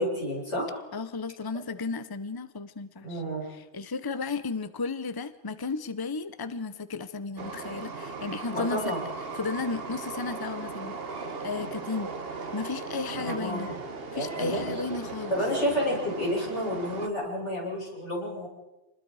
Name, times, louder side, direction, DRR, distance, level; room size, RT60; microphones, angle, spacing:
voice 1, 0.0-0.8 3.0-3.5 8.5-9.0 13.2-13.8 14.1-14.6 15.3-18.5, equal, 85° left, -3 dB, 7.5 m, -30 dB
voice 2, 0.9-3.2 3.5-8.9 9.3-12.1 12.5-13.7 14.1-15.4, left 4 dB, 20° left, 12 dB, 0.8 m, -34 dB
Train, 7.4-17.1, right 4 dB, 55° right, 1.6 m, -37 dB
27.5 x 20.5 x 4.9 m, 0.99 s
omnidirectional pair, 1.2 m